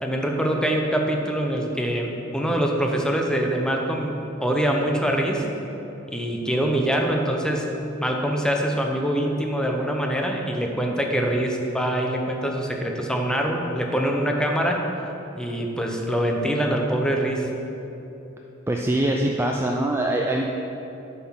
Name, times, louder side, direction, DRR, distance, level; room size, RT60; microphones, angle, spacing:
voice 1, 0.0-5.4 6.1-7.7 8.0-14.8 15.3-17.5, right 1 dB, 5° left, 1 dB, 0.8 m, -24 dB
voice 2, 18.7-20.4, right 1 dB, 10° right, 0 dB, 0.4 m, -23 dB
7.7 x 5.8 x 6.2 m, 3.0 s
head